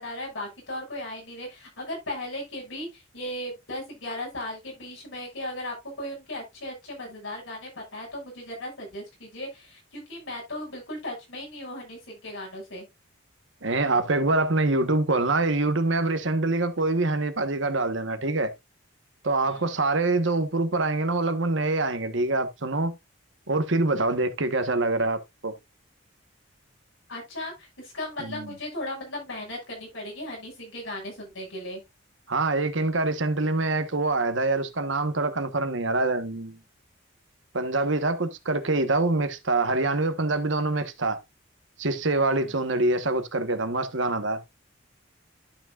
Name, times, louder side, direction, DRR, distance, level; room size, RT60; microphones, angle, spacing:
voice 1, 0.0-12.9 19.5-19.7 27.1-31.8 42.4-42.6, left 1 dB, 75° left, 6.1 m, -37 dB
voice 2, 13.6-18.5 19.2-23.0 23.5-25.5 28.2-28.5 32.3-36.6 37.5-41.2 41.8-44.4, right 2 dB, 70° right, 1.2 m, -25 dB
12.0 x 6.1 x 2.4 m
head